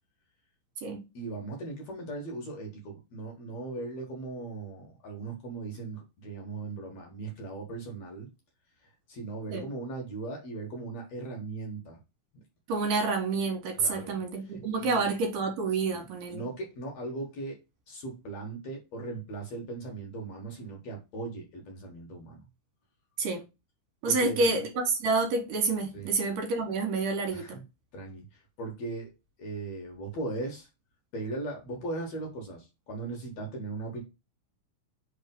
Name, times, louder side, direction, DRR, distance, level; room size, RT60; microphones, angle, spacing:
voice 1, 1.1-8.3 9.1-12.0 13.7-14.2 14.5-15.1 15.9-16.0 16.3-17.6 17.9-22.4 24.0-24.5 25.9-26.1 27.3-27.6 27.9-29.1 29.4-30.7 31.1-34.0, right 2 dB, 55° left, 2.3 m, -38 dB
voice 2, 12.7-16.4 23.2-23.4 24.0-27.5, right 3 dB, 70° right, 2.9 m, -28 dB
5.4 x 3.6 x 5.2 m
omnidirectional pair, 4.2 m